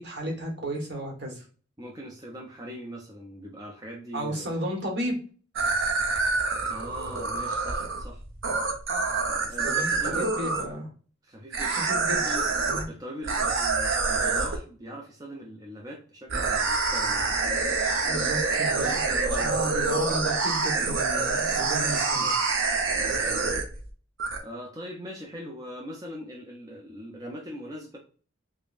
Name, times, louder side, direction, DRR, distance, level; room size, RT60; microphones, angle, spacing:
voice 1, 0.0-1.4 4.1-5.2 9.6-10.9 11.7-12.3 12.6-12.9 18.0-19.0 19.4-22.3, right 1 dB, 50° right, 1 dB, 1.1 m, -33 dB
voice 2, 1.8-4.6 6.7-8.2 9.3-10.3 11.2-12.5 12.9-17.3 19.0-19.8 22.1-22.3 22.9-23.5 24.4-28.0, equal, 15° right, -2 dB, 0.5 m, -41 dB
sound 1, 5.6-10.7 11.5-12.8 13.2-14.6 16.3-23.9 24.2-24.4, right 4 dB, 70° right, 0.8 m, -26 dB
5.0 x 2.2 x 2.4 m, 0.40 s
head